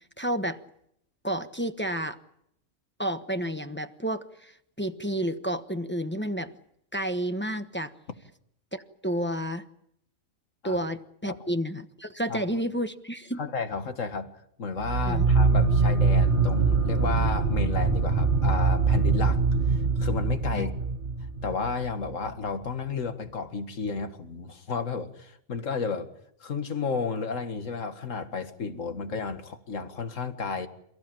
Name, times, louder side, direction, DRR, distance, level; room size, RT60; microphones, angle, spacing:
voice 1, 0.2-0.6 1.2-2.2 3.0-6.5 6.9-7.9 8.7-9.6 10.6-13.4 15.1-15.3 20.5-20.7, right 1 dB, 10° left, 7 dB, 1.0 m, -30 dB
voice 2, 13.4-14.3 14.6-19.4 19.7-20.7 21.4-26.1 26.4-30.7, left 4 dB, 65° left, 8 dB, 2.1 m, -32 dB
sound 1, 14.8-22.1, right 4 dB, 40° right, 1.6 m, -23 dB
28.5 x 16.0 x 8.9 m, 0.74 s
omnidirectional pair, 1.4 m